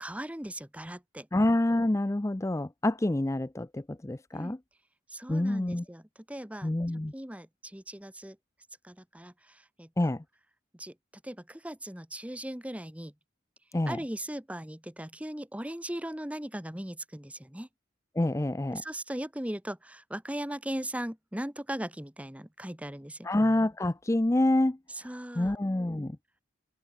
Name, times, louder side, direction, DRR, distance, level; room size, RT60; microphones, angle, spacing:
voice 1, 0.0-1.3 4.3-4.6 5.1-6.7 7.1-8.4 8.8-10.1 10.7-13.1 13.9-17.7 18.7-23.3 24.9-25.6, right 1 dB, 5° right, 1.0 m, -38 dB
voice 2, 1.3-4.6 5.3-5.8 6.6-7.1 10.0-10.2 13.7-14.0 18.2-18.8 23.2-24.8 25.4-26.2, left 1 dB, 15° left, 0.4 m, -27 dB
open air
head